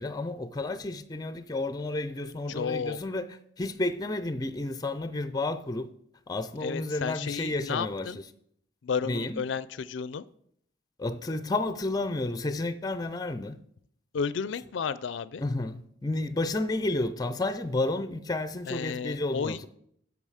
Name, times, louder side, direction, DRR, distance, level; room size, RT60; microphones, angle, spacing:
voice 1, 0.0-3.3 3.6-5.9 6.3-8.1 9.0-9.4 11.0-13.6 15.4-19.7, left 2 dB, 20° left, 0.5 m, -31 dB
voice 2, 2.5-3.0 6.6-8.2 8.8-10.2 14.1-15.4 18.7-19.7, left 6 dB, 80° left, 0.4 m, -32 dB
8.9 x 6.0 x 6.4 m
head